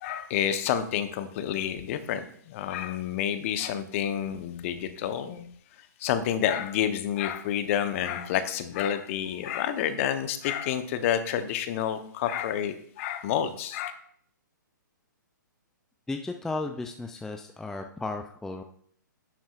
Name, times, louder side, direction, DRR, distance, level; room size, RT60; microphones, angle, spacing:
voice 1, 0.0-5.5 6.0-13.9, left 9 dB, 40° left, 10 dB, 0.9 m, -29 dB
voice 2, 16.1-18.6, left 3 dB, 5° left, 5 dB, 0.4 m, -34 dB
11.0 x 7.2 x 2.5 m, 0.62 s
hypercardioid pair, 125°, 11 cm